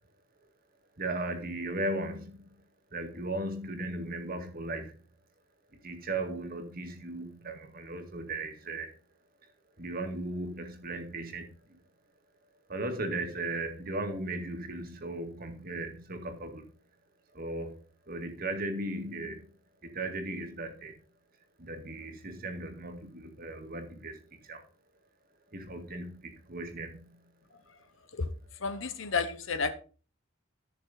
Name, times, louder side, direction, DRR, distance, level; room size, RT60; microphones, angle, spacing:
voice 1, 1.0-2.6 2.9-5.0 5.8-9.0 9.8-11.8 12.7-16.7 17.3-17.8 18.1-19.5 19.8-21.0 21.6-24.6 25.5-27.3, right 2 dB, 50° right, 2.0 m, -37 dB
voice 2, 28.6-29.7, left 4 dB, 85° left, 1.0 m, -31 dB
14.0 x 6.1 x 4.0 m
head